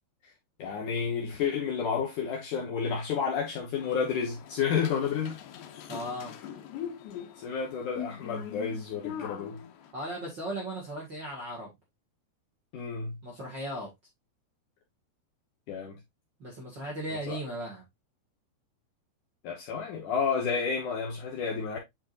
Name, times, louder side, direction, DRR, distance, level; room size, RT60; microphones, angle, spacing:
voice 1, 0.6-5.3 7.4-9.6 12.7-13.2 15.7-16.0 17.1-17.4 19.4-21.8, left 6 dB, 65° left, 2.2 m, -31 dB
sound 1, 3.8-9.9, left 9 dB, 80° left, 3.1 m, -42 dB
voice 2, 5.9-6.3 9.9-11.7 13.2-13.9 16.4-17.8, right 1 dB, 35° right, 2.0 m, -37 dB
8.6 x 5.2 x 2.5 m
omnidirectional pair, 4.9 m